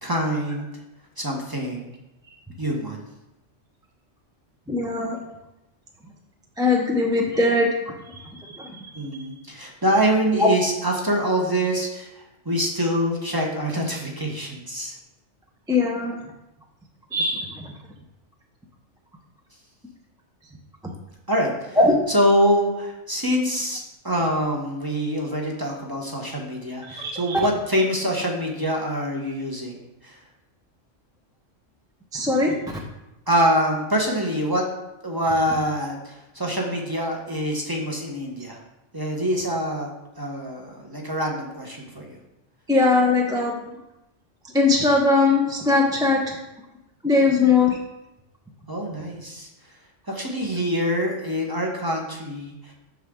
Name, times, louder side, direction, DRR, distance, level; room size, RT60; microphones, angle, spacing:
voice 1, 0.0-0.7 1.2-1.9 2.6-3.0 8.9-14.9 21.3-21.8 22.1-29.8 30.0-30.2 33.3-34.6 35.0-38.6 38.9-39.9 40.2-42.2 47.2-47.5 48.7-49.5 50.1-52.7, equal, 20° right, -1 dB, 1.1 m, -25 dB
voice 2, 4.7-5.2 6.6-8.9 10.3-10.5 15.7-16.3 17.1-17.7 20.8-20.9 21.8-22.0 26.9-27.4 32.1-32.5 42.7-43.6 44.5-46.4 47.0-47.8, left 3 dB, 5° right, -1 dB, 0.6 m, -21 dB
7.0 x 6.4 x 3.7 m, 0.94 s
omnidirectional pair, 1.3 m